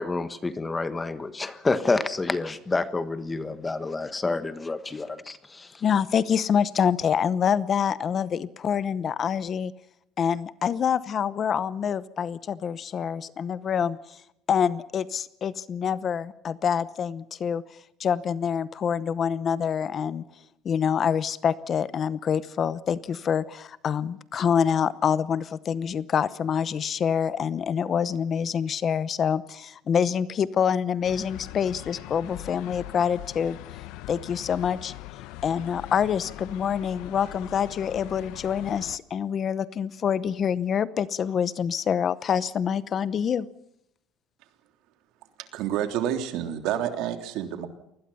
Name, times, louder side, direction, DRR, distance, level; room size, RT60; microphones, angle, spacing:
voice 1, 0.0-5.8, left 3 dB, 15° left, 12 dB, 1.4 m, -28 dB
voice 2, 5.8-9.7 10.2-14.2 14.5-17.6 18.0-20.2 20.6-33.6 34.1-34.9 35.4-43.5, left 7 dB, 35° left, 16 dB, 0.9 m, -26 dB
sound 1, 31.0-39.0, left 16 dB, 75° left, 0.9 m, -41 dB
voice 3, 45.5-47.7, right 10 dB, 70° right, 7 dB, 3.2 m, -28 dB
28.5 x 20.5 x 5.6 m, 0.81 s
cardioid pair, 150°, 0 cm